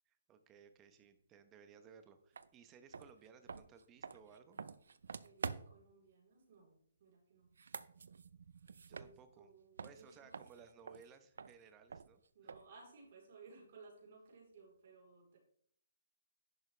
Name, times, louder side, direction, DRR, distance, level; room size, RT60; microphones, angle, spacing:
voice 1, 0.1-4.6 8.9-9.5 9.8-12.2, right 6 dB, 20° right, 9 dB, 0.9 m, -60 dB
sound 1, 2.3-2.5 2.9-5.9 7.4-9.5 9.8-12.8, right 5 dB, 80° right, 0.5 m, -48 dB
voice 2, 5.2-7.5 8.9-10.4 12.3-15.4, right 4 dB, 50° right, -1 dB, 3.9 m, -60 dB
10.5 x 6.4 x 3.3 m, 0.63 s
hypercardioid pair, 155°, 0 cm